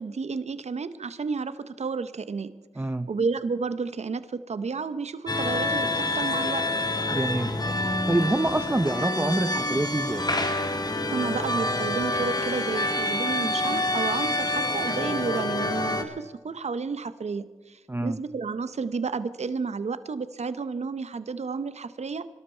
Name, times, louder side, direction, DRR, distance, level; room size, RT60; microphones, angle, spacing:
voice 1, 0.0-2.5 3.1-6.7 11.0-22.3, right 4 dB, 65° right, 13 dB, 0.9 m, -31 dB
voice 2, 2.8-3.1 7.1-7.5 7.8-10.3 17.9-18.2, right 2 dB, 20° right, 11 dB, 0.7 m, -26 dB
sound 1, 5.3-16.0, left 1 dB, 30° left, 2.1 m, -27 dB
24.5 x 12.5 x 4.5 m, 1.3 s
cardioid pair, 40°, 12 cm